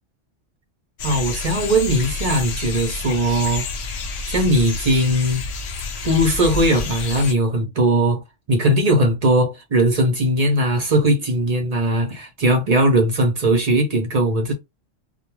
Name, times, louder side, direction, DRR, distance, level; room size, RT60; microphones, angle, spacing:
sound 1, 1.0-7.3, left 4 dB, 75° left, 0.9 m, -29 dB
voice 1, 1.0-3.7 4.3-5.5 6.0-8.2 8.5-14.5, right 1 dB, 45° right, 0.5 m, -19 dB
2.2 x 2.1 x 3.0 m
omnidirectional pair, 1.3 m